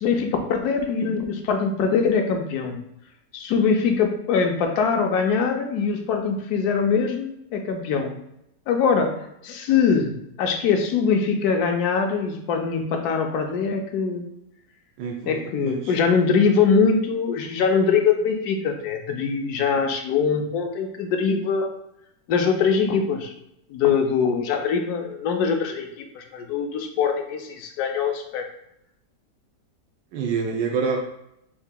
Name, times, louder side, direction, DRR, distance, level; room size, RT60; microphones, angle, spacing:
voice 1, 0.0-2.8 3.3-8.1 8.7-9.2 9.4-14.3 15.3-21.7 22.3-23.3 23.7-28.5, left 5 dB, 70° left, 4 dB, 1.1 m, -22 dB
voice 2, 15.0-15.9 30.1-31.0, right 5 dB, 85° right, 0 dB, 1.2 m, -27 dB
6.7 x 2.8 x 2.2 m, 0.80 s
omnidirectional pair, 1.8 m